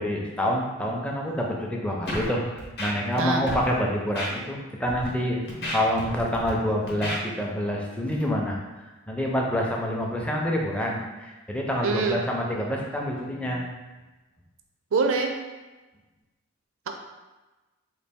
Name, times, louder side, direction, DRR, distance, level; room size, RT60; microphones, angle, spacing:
voice 1, 0.0-5.4 5.7-8.6 9.1-13.7, equal, 5° left, -1 dB, 0.4 m, -27 dB
Scratching (performance technique), 2.1-2.3 2.6-3.2 3.5-3.6 4.2-4.3 4.9-5.1 5.5-6.5 6.9-7.2, equal, 50° left, 0.8 m, -32 dB
voice 2, 11.8-12.2 14.9-15.3 16.9-17.0, right 4 dB, 70° right, 4 dB, 0.4 m, -24 dB
4.0 x 2.3 x 3.4 m, 1.2 s
head